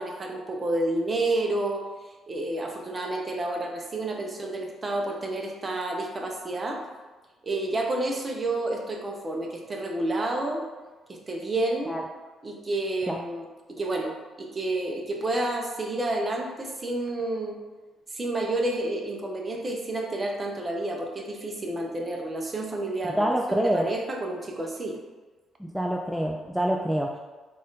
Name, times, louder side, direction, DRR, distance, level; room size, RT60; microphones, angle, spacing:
voice 1, 0.0-1.9 2.3-6.8 7.4-10.6 11.1-12.0 12.4-17.6 18.1-25.0, right 2 dB, 30° right, 1 dB, 0.7 m, -30 dB
voice 2, 23.1-23.9 25.6-27.2, equal, ahead, 0 dB, 0.3 m, -26 dB
4.2 x 2.5 x 3.8 m, 1.2 s
cardioid pair, 90°, 0 cm